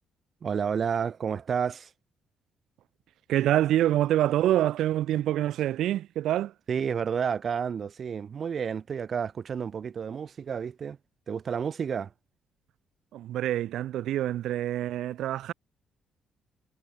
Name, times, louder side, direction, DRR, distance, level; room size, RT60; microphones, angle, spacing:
voice 1, 0.4-1.9 6.7-11.0 11.3-12.1, right 7 dB, 50° right, 2.6 m, -30 dB
voice 2, 3.3-6.5 13.1-15.5, right 13 dB, 80° right, 0.8 m, -26 dB
cardioid pair, 90°, 0 cm